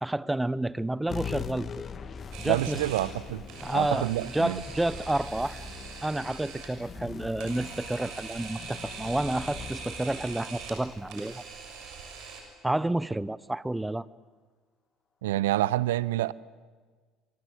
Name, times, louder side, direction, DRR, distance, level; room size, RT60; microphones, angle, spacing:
voice 1, 0.0-1.7 2.4-2.8 3.6-5.6 6.0-11.4 12.6-14.1, right 1 dB, 10° right, 0.9 m, -30 dB
sound 1, 1.1-11.9, left 6 dB, 40° left, 2.1 m, -42 dB
Camera, 2.3-12.4, right 5 dB, 60° right, 6.9 m, -43 dB
voice 2, 2.4-3.4 3.7-4.6 15.2-16.3, right 15 dB, 80° right, 0.7 m, -27 dB
29.5 x 24.5 x 8.1 m
hypercardioid pair, 65°, 0 cm